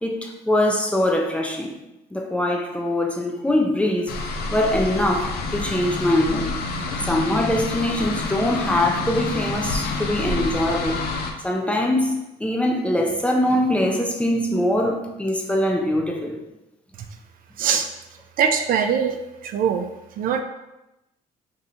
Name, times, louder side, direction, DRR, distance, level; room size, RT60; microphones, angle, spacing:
voice 1, 0.0-1.7 2.1-4.1 4.5-6.5 7.0-11.0 11.4-16.4, left 1 dB, 5° left, 1 dB, 0.5 m, -22 dB
sound 1, 4.1-11.3, left 3 dB, 70° left, 0.5 m, -28 dB
voice 2, 17.6-17.9 18.4-19.9 20.2-20.4, right 7 dB, 55° right, 6 dB, 0.4 m, -22 dB
2.6 x 2.5 x 4.2 m, 0.92 s
cardioid pair, 110°, 17 cm